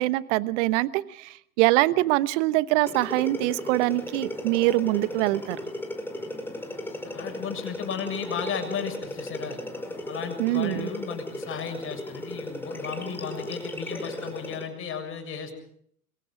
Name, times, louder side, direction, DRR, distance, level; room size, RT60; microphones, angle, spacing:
voice 1, 0.0-5.6 10.4-10.9, right 18 dB, 50° right, 17 dB, 1.1 m, -24 dB
sound 1, 2.8-14.7, left 1 dB, 5° left, 4.7 m, -36 dB
voice 2, 7.0-9.6 10.1-15.5, left 7 dB, 30° left, 4 dB, 7.0 m, -34 dB
26.5 x 22.5 x 5.2 m, 0.65 s
hypercardioid pair, 95°, 45 cm